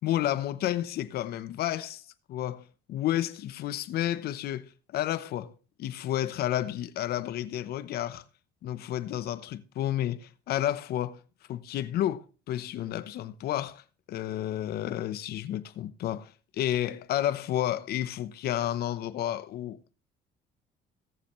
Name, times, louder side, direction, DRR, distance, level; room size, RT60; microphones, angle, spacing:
voice 1, 0.0-2.0 2.3-2.6 2.9-5.5 5.8-8.2 8.6-11.2 11.5-19.9, left 12 dB, 70° left, 0.9 m, -31 dB
18.0 x 7.0 x 3.1 m
cardioid pair, 110°, 17 cm